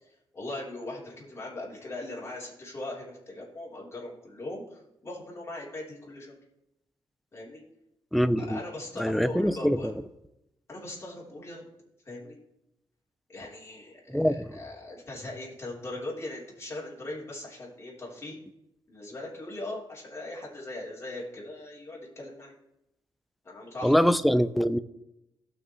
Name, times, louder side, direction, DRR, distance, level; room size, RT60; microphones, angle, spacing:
voice 1, 0.0-6.3 7.3-7.6 8.4-9.9 10.7-11.7 12.1-12.3 13.3-18.4 18.9-22.5 23.4-24.0, left 2 dB, 30° left, 3.4 m, -40 dB
voice 2, 8.1-8.6 9.0-9.9 14.1-14.6 23.8-24.8, equal, ahead, 0.4 m, -24 dB
17.5 x 6.0 x 3.1 m
cardioid pair, 120°, 9 cm